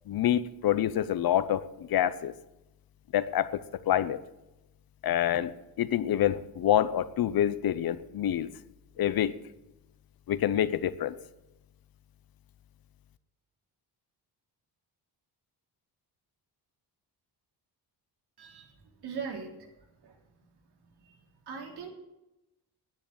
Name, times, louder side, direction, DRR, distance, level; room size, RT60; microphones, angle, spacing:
voice 1, 0.1-2.3 3.1-4.2 5.0-5.5 5.8-8.5 9.0-9.3 10.3-11.1, left 11 dB, 60° left, 15 dB, 0.9 m, -27 dB
voice 2, 18.4-19.7 20.0-20.2 21.0-21.2 21.5-21.9, right 5 dB, 70° right, 1 dB, 3.6 m, -40 dB
10.0 x 9.9 x 8.9 m, 0.95 s
cardioid pair, 130°, 40 cm